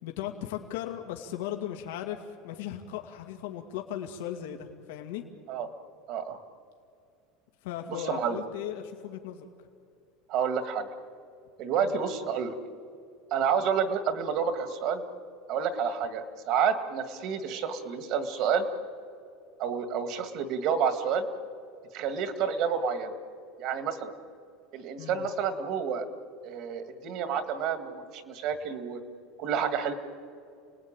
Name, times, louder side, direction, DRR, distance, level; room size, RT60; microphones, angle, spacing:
voice 1, 0.0-5.3 7.6-9.5 11.8-12.0 25.0-25.3, left 11 dB, 85° left, 3 dB, 2.2 m, -37 dB
voice 2, 6.1-6.4 8.1-8.4 10.3-10.9 11.6-12.5 13.3-15.0 15.5-18.7 19.6-21.3 21.9-23.1 23.6-24.1 24.7-26.1 26.4-29.0 29.4-29.9, right 7 dB, 45° right, 9 dB, 1.9 m, -29 dB
30.0 x 20.0 x 9.0 m, 2.4 s
cardioid pair, 175°, 0 cm